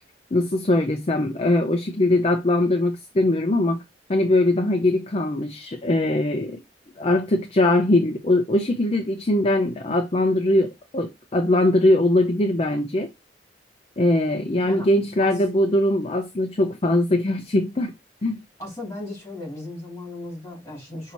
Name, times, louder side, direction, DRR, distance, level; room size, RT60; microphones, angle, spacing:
voice 1, 0.3-3.8 4.1-6.6 7.0-13.1 14.0-17.9 18.2-18.4, left 1 dB, 35° left, 0.5 m, -21 dB
voice 2, 18.6-21.1, left 2 dB, 15° left, 2.7 m, -36 dB
5.6 x 2.7 x 2.9 m
head